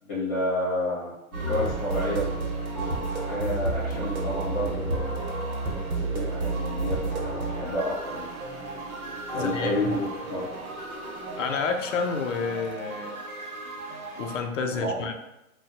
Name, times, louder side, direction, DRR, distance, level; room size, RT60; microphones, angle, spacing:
voice 1, 0.0-2.3 3.2-5.1 5.9-8.3 9.3-10.5 14.7-15.0, left 1 dB, 15° left, -7 dB, 1.0 m, -30 dB
sound 1, 1.3-14.4, right 3 dB, 75° right, 1.2 m, -32 dB
sound 2, 2.7-11.5, equal, 20° right, 0.6 m, -40 dB
voice 2, 9.3-10.0 11.4-13.2 14.2-15.1, left 5 dB, 60° left, 5 dB, 0.5 m, -29 dB
2.7 x 2.2 x 4.0 m, 0.94 s
hypercardioid pair, 165°, 43 cm